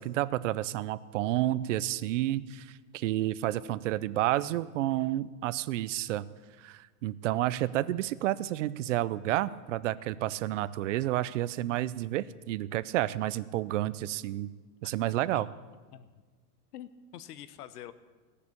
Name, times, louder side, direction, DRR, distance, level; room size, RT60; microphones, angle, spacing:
voice 1, 0.0-6.2 6.6-14.5 14.8-15.5, right 14 dB, 55° right, 17 dB, 0.6 m, -30 dB
voice 2, 14.8-15.5 15.9-16.1 16.7-17.9, left 11 dB, 75° left, 14 dB, 0.9 m, -46 dB
17.5 x 6.8 x 8.4 m, 1.4 s
supercardioid pair, 150°, 47 cm